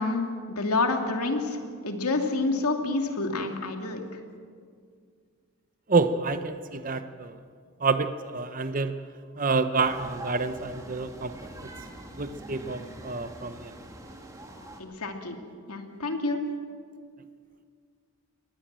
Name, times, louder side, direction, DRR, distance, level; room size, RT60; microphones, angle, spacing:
voice 1, 0.0-4.0 14.8-15.4 15.7-16.4, left 3 dB, 85° left, 4 dB, 2.7 m, -28 dB
voice 2, 5.9-7.4 7.8-9.0 9.4-11.7 12.2-13.7, right 4 dB, 35° right, 10 dB, 0.8 m, -28 dB
sound 1, 9.8-14.8, right 1 dB, 15° right, 2.1 m, -44 dB
23.0 x 19.0 x 7.6 m, 2.1 s
head